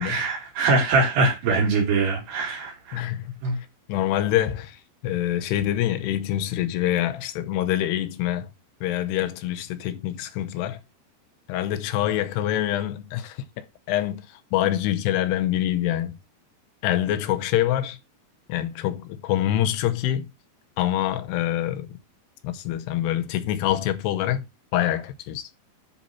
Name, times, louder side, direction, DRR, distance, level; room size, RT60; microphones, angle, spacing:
voice 1, 0.0-3.0 3.4-3.6, right 3 dB, 80° right, 4.5 m, -23 dB
voice 2, 2.9-8.5 8.8-10.8 11.5-16.2 16.8-18.0 18.5-20.3 20.8-22.0 22.4-24.5 24.7-25.5, left 12 dB, 85° left, 2.9 m, -26 dB
10.5 x 4.0 x 4.3 m
omnidirectional pair, 4.7 m